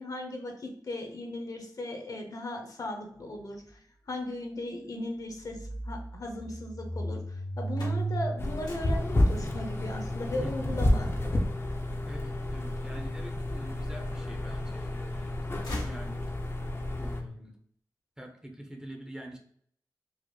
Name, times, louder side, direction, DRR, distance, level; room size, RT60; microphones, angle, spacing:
voice 1, 0.0-3.6 4.1-5.6 5.8-11.1, left 1 dB, 60° left, 2 dB, 0.8 m, -37 dB
sound 1, 3.3-3.4 3.7-3.8 5.3-17.3, equal, 45° right, 1.0 m, -37 dB
sound 2, 7.4-13.4 14.0-14.8 15.1-16.7, left 1 dB, 90° left, 1.4 m, -44 dB
sound 3, 8.4-17.2, left 1 dB, 35° left, 0.5 m, -31 dB
voice 2, 10.4-10.7 12.0-15.5 15.8-16.2 17.0-17.5 18.2-19.4, right 1 dB, 10° right, 2 dB, 0.6 m, -45 dB
4.7 x 2.0 x 3.0 m, 0.63 s
wide cardioid pair, 105°, 7 cm